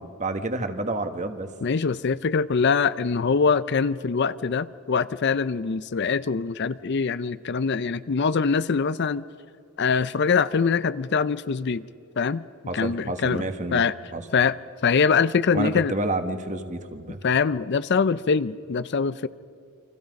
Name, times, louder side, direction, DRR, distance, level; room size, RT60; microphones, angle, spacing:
voice 1, 0.0-1.5 12.7-13.8 14.1-14.2 15.5-17.2, right 2 dB, 35° right, 8 dB, 1.4 m, -29 dB
voice 2, 1.6-9.3 9.8-11.8 12.2-12.4 12.7-13.5 13.7-13.9 14.3-14.6 14.8-15.9 17.2-19.3, left 5 dB, 50° left, 16 dB, 0.5 m, -23 dB
29.5 x 24.5 x 5.3 m, 2.5 s
head